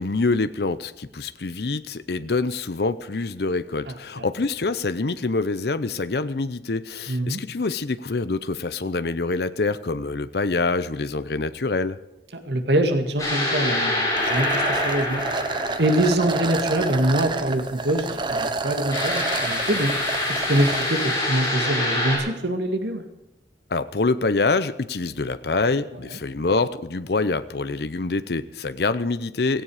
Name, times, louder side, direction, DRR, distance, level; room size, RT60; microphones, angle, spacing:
voice 1, 0.0-12.0 23.7-29.6, left 3 dB, 60° left, 12 dB, 0.7 m, -25 dB
voice 2, 3.9-4.2 7.1-7.4 12.5-15.2 15.8-19.9 20.3-23.0, right 1 dB, 75° right, 6 dB, 2.0 m, -24 dB
sound 1, 13.2-16.6 18.9-22.2, left 1 dB, 20° left, 7.3 m, -26 dB
sound 2, 14.2-20.8, right 3 dB, 25° right, 0.9 m, -29 dB
16.5 x 16.5 x 4.9 m, 0.96 s
head